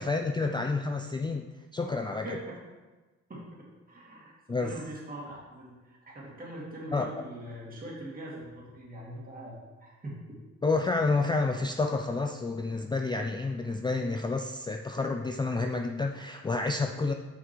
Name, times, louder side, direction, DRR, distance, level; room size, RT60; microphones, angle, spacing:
voice 1, 0.0-1.5 1.7-2.4 4.5-4.7 6.9-7.1 10.6-17.1, left 3 dB, 15° left, 4 dB, 0.4 m, -29 dB
voice 2, 2.2-2.6 3.3-10.4, right 1 dB, 30° right, -4 dB, 2.2 m, -42 dB
6.2 x 5.8 x 4.6 m, 1.2 s
cardioid pair, 90°, 30 cm